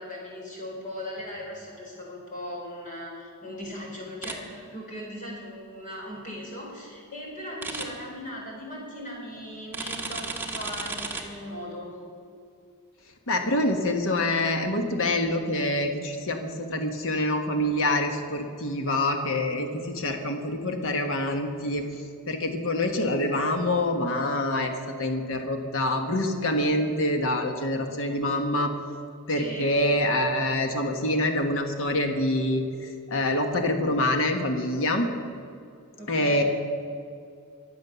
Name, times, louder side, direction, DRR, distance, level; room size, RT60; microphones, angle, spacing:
voice 1, 0.0-11.9 29.3-29.8 36.0-36.4, equal, 35° left, -2 dB, 4.7 m, -38 dB
sound 1, 4.2-4.3 7.6-7.8 9.7-11.2, right 3 dB, 10° right, 1.4 m, -33 dB
voice 2, 13.3-21.9 22.3-24.7 25.0-28.7 29.3-35.1 36.1-36.4, left 1 dB, 60° left, 5 dB, 1.3 m, -26 dB
22.0 x 7.8 x 6.9 m, 2.4 s
head